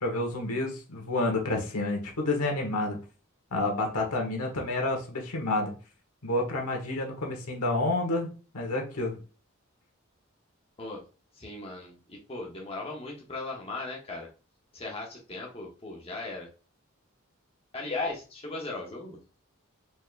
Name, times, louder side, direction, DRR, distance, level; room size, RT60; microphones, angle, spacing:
voice 1, 0.0-3.0 3.5-5.7 6.2-8.3 8.5-9.1, left 2 dB, 85° left, 2 dB, 1.2 m, -29 dB
voice 2, 11.3-14.3 14.7-16.5 17.7-19.2, left 3 dB, 25° left, -1 dB, 0.8 m, -37 dB
4.4 x 3.4 x 2.4 m, 0.34 s
head